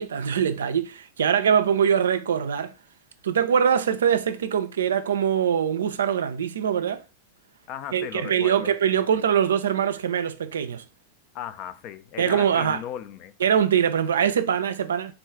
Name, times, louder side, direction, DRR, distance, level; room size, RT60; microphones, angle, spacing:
voice 1, 0.0-2.7 3.2-7.0 7.9-10.8 12.2-12.8 13.4-15.1, right 8 dB, 65° right, 0.3 m, -23 dB
voice 2, 7.7-8.7 9.0-9.1 11.3-13.3, left 10 dB, 40° left, 0.3 m, -36 dB
3.7 x 2.3 x 3.5 m
figure-of-eight pair, 90°, 0 cm